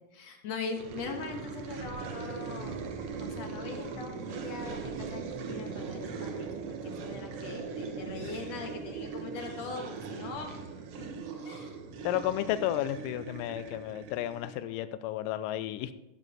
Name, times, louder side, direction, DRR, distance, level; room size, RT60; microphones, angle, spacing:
voice 1, 0.1-2.8 3.2-5.2 5.5-10.5 11.0-11.1 11.4-11.8, left 4 dB, 60° left, 3 dB, 2.0 m, -41 dB
sound 1, 0.8-14.6, right 5 dB, 70° right, 1.4 m, -39 dB
voice 2, 12.0-15.9, left 12 dB, 80° left, 13 dB, 2.1 m, -32 dB
13.0 x 7.4 x 4.1 m, 0.98 s
omnidirectional pair, 4.0 m